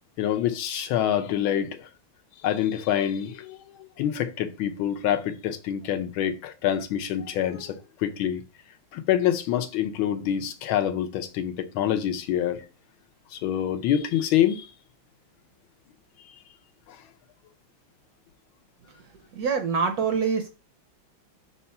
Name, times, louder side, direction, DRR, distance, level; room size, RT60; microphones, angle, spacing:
voice 1, 0.2-1.9 2.4-3.6 4.0-8.4 8.9-12.6 13.3-14.7 16.9-17.0, left 10 dB, 85° left, 1.6 m, -26 dB
voice 2, 19.3-20.5, right 6 dB, 65° right, 1.0 m, -25 dB
4.3 x 4.2 x 5.7 m
omnidirectional pair, 2.2 m